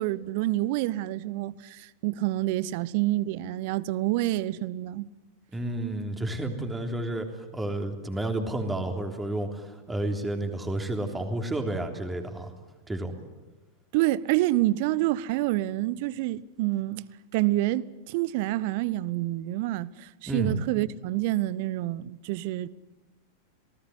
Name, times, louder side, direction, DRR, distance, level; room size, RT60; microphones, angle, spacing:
voice 1, 0.0-5.1 13.9-17.0 17.3-22.7, right 16 dB, 50° right, 0.8 m, -27 dB
voice 2, 5.5-7.3 7.5-12.5 12.9-13.1 20.3-20.6, right 1 dB, 10° right, 3.3 m, -31 dB
27.5 x 19.0 x 9.8 m
figure-of-eight pair, 90°, 0 cm